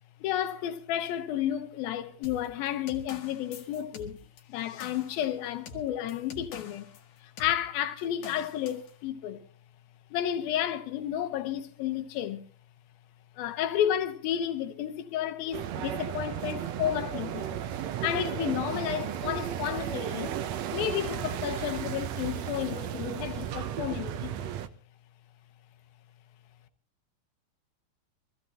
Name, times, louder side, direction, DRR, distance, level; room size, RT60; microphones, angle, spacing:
voice 1, 0.2-4.2 4.5-6.9 7.2-9.4 10.1-12.4 13.4-17.6 18.0-20.4 20.7-24.5, left 11 dB, 90° left, 2.8 m, -32 dB
sound 1, 2.2-7.0 7.4-7.6 8.2-8.9, left 3 dB, 65° left, 3.0 m, -46 dB
sound 2, 15.5-24.7, right 10 dB, 70° right, 1.6 m, -34 dB
24.5 x 15.0 x 2.9 m
omnidirectional pair, 4.1 m